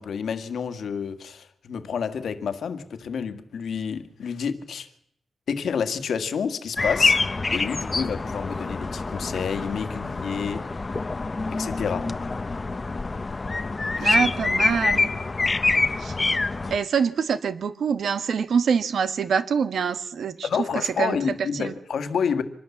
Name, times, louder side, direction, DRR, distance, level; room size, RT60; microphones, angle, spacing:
voice 1, 0.0-4.9 5.5-7.2 7.5-10.7 11.5-12.2 14.0-14.2 20.4-22.4, left 6 dB, 90° left, 1.8 m, -29 dB
sound 1, 6.8-16.8, left 3 dB, 30° left, 0.9 m, -26 dB
voice 2, 14.0-15.1 16.0-16.1 16.7-20.5 21.0-21.2 21.5-21.7, right 6 dB, 80° right, 1.6 m, -25 dB
26.0 x 20.5 x 7.3 m
wide cardioid pair, 130°, 0 cm